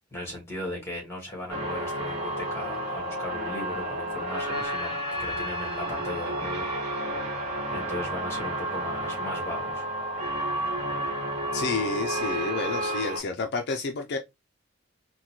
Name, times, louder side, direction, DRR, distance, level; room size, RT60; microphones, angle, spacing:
voice 1, 0.1-6.7 7.7-9.8, left 1 dB, 15° left, 1.5 m, -37 dB
sound 1, 1.5-13.2, right 1 dB, 30° right, 1.3 m, -31 dB
voice 2, 11.5-14.2, left 4 dB, 55° left, 0.4 m, -30 dB
3.8 x 2.1 x 2.9 m
head